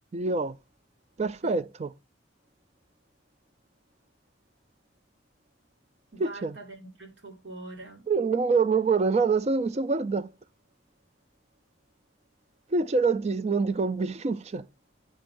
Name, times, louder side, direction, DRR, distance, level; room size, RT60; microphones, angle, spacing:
voice 1, 0.1-0.5 1.2-1.9 6.2-6.6 8.1-10.3 12.7-14.7, right 4 dB, 35° right, 0.4 m, -25 dB
voice 2, 6.1-8.1, right 2 dB, 70° right, 2.1 m, -44 dB
10.5 x 3.8 x 2.6 m
head